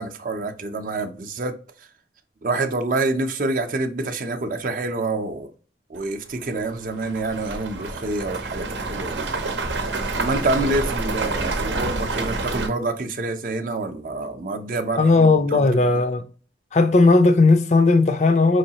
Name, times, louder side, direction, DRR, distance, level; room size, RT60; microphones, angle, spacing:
voice 1, 0.0-1.5 2.4-5.5 5.9-9.3 10.2-15.9, right 2 dB, 50° right, 0.5 m, -27 dB
sound 1, 6.0-6.1 6.6-12.7, right 3 dB, 85° right, 0.7 m, -28 dB
voice 2, 15.0-16.2 16.7-18.6, left 3 dB, 40° left, 0.4 m, -16 dB
4.6 x 3.2 x 2.8 m
head